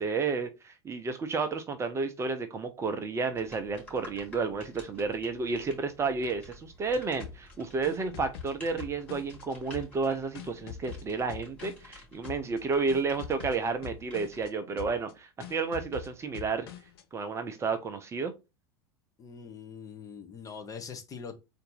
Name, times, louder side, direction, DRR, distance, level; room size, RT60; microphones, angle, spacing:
voice 1, 0.0-16.7 17.1-18.3, right 4 dB, 20° right, 0.5 m, -31 dB
sound 1, 3.3-14.5, left 1 dB, 10° left, 2.7 m, -52 dB
sound 2, 7.2-9.4 9.7-12.0 12.2-12.6 12.9-14.5 14.8-15.1 15.4-17.0, left 9 dB, 60° left, 0.6 m, -44 dB
voice 2, 19.2-21.4, left 6 dB, 25° left, 0.7 m, -43 dB
3.9 x 2.6 x 3.9 m
figure-of-eight pair, 80°, 14 cm